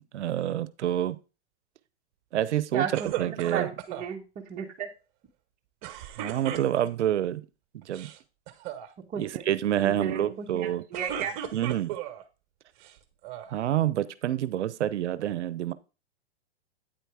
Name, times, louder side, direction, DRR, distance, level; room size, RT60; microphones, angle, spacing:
voice 1, 0.1-1.2 2.3-3.7 6.2-7.4 7.7-8.1 9.2-10.8 11.5-12.0 13.5-15.7, right 11 dB, 85° right, 0.7 m, -28 dB
voice 2, 2.7-4.9 9.1-9.4 9.8-11.3, right 7 dB, 25° right, 1.1 m, -34 dB
sound 1, 2.9-4.1 5.8-7.1 7.8-8.2 8.5-8.9 10.7-12.2 12.8-13.6, right 11 dB, 45° right, 1.0 m, -36 dB
9.0 x 4.5 x 4.7 m
hypercardioid pair, 130°, 34 cm